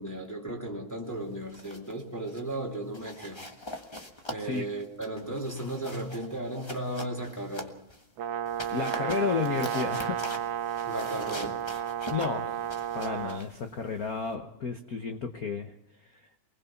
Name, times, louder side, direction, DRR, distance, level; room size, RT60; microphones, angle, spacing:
voice 1, 0.0-3.5 4.3-7.7 10.9-11.6, right 1 dB, 5° left, -1 dB, 1.9 m, -35 dB
sound 1, 1.3-2.0 2.3-2.5 2.9-8.0 8.4-14.3, left 1 dB, 40° left, 0.4 m, -43 dB
Brass instrument, 8.2-13.4, right 10 dB, 90° right, 2.4 m, -32 dB
voice 2, 8.7-10.2 12.1-12.5 12.9-15.7, left 5 dB, 80° left, 6 dB, 0.8 m, -32 dB
24.5 x 20.0 x 5.9 m, 0.75 s
omnidirectional pair, 3.3 m